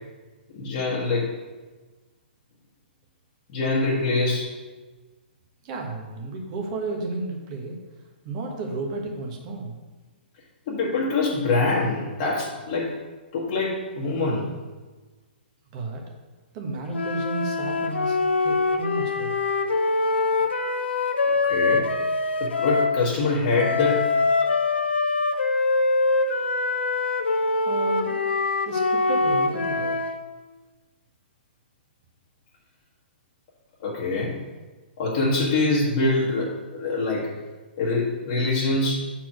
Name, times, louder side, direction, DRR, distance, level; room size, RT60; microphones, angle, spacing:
voice 1, 0.5-1.3 3.5-4.5 10.7-13.0 13.3-14.5 21.2-21.9 22.4-24.1 24.4-24.5 33.8-34.4 35.0-37.3 37.8-39.1, left 3 dB, 45° left, -5 dB, 1.4 m, -24 dB
voice 2, 5.6-7.8 8.2-9.8 15.7-16.0 16.5-19.3 27.6-28.3 28.6-30.0, right 2 dB, 40° right, 1 dB, 1.5 m, -32 dB
sound 1, 16.9-23.0 23.5-30.2, left 3 dB, 85° left, 0.7 m, -24 dB
6.3 x 4.5 x 6.0 m, 1.3 s
hypercardioid pair, 135°, 6 cm